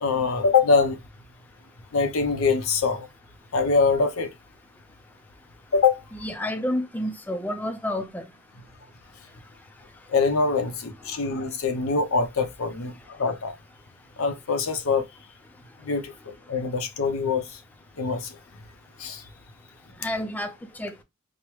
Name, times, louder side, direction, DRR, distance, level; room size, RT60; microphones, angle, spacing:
voice 1, 0.0-1.0 1.9-3.1 3.5-4.3 5.7-6.0 10.1-13.6 14.2-15.1 15.8-17.4 18.0-18.4 19.0-19.2, left 4 dB, 85° left, 0.6 m, -24 dB
voice 2, 6.2-8.2 20.0-20.9, left 1 dB, 10° left, 0.3 m, -30 dB
4.8 x 2.0 x 3.0 m
head